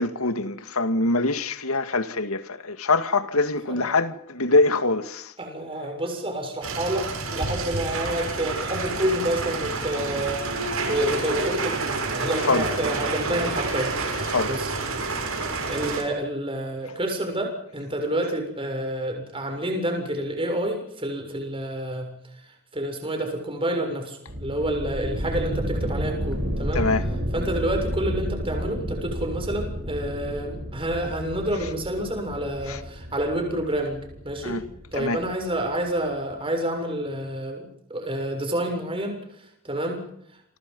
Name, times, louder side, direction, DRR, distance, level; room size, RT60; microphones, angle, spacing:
voice 1, 0.0-5.3 12.5-12.7 14.3-14.5 26.7-27.1 32.7-32.8 34.4-34.6 35.0-35.2, left 3 dB, 85° left, 2.2 m, -24 dB
voice 2, 5.4-10.4 10.9-15.1 15.7-22.1 22.7-26.9 27.3-34.6 34.9-39.2 39.6-40.0, right 1 dB, 25° right, 7.1 m, -29 dB
sound 1, 6.6-16.0, right 3 dB, 75° right, 6.8 m, -29 dB
sound 2, 24.3-35.7, equal, 55° right, 7.2 m, -31 dB
29.0 x 26.0 x 5.6 m
head